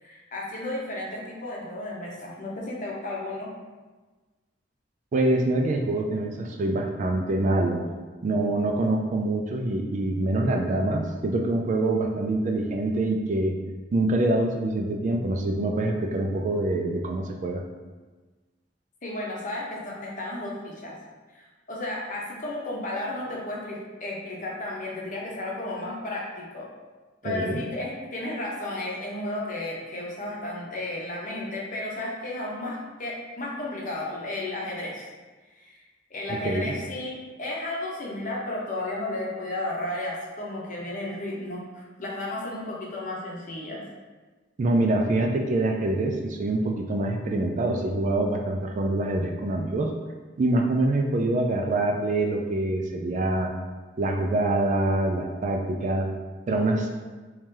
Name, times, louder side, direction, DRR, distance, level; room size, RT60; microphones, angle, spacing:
voice 1, 0.0-3.5 19.0-21.0 21.3-26.7 27.2-35.1 35.5-35.8 36.1-43.8, left 1 dB, 45° left, -3 dB, 0.8 m, -33 dB
voice 2, 5.1-7.8 8.2-13.5 13.9-17.6 27.2-27.6 36.4-36.7 44.6-49.9 50.4-53.5 54.0-56.1 56.5-56.9, right 2 dB, 40° right, 3 dB, 0.3 m, -25 dB
3.0 x 2.8 x 3.7 m, 1.3 s
head